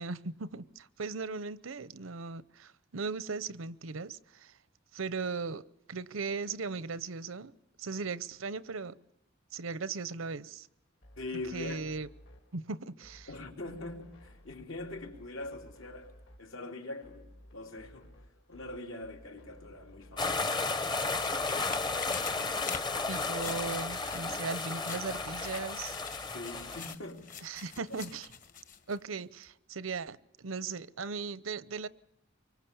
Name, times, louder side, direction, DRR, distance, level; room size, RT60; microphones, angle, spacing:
voice 1, 0.0-4.5 4.9-5.6 5.9-8.9 9.5-10.7 11.5-12.1 12.5-13.3 23.1-25.9 27.4-28.3 28.9-31.9, right 4 dB, 80° right, 0.8 m, -38 dB
sound 1, 11.0-27.0, equal, 60° left, 2.8 m, -56 dB
voice 2, 11.2-11.8 13.3-16.1 16.4-18.1 18.5-20.6 26.3-27.5, left 2 dB, 75° left, 3.8 m, -42 dB
sound 2, 20.2-26.9, left 3 dB, 20° left, 0.9 m, -33 dB
sound 3, 20.3-29.0 29.4-29.5, left 7 dB, 40° left, 1.4 m, -46 dB
25.0 x 24.0 x 7.1 m
head